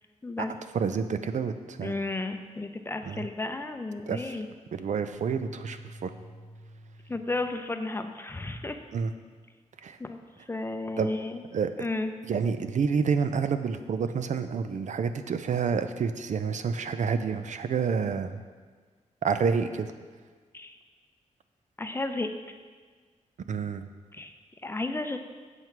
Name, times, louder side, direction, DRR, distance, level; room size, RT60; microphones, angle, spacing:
voice 1, 0.7-1.9 3.1-3.3 4.1-4.4 4.7-6.1 8.9-9.1 9.8-10.0 11.0-11.1 11.5-11.9 12.2-18.4 19.2-19.9 23.5-23.8, right 6 dB, 70° right, 10 dB, 0.5 m, -29 dB
voice 2, 1.8-4.5 7.1-8.8 10.0-10.2 10.5-11.4 11.8-12.1 20.5-20.8 21.8-22.3 24.1-24.3 24.6-25.2, left 2 dB, 20° left, 6 dB, 0.5 m, -33 dB
sound 1, 5.1-7.6, right 1 dB, 30° right, 1.2 m, -48 dB
8.1 x 7.5 x 4.6 m, 1.5 s
wide cardioid pair, 135°, 13 cm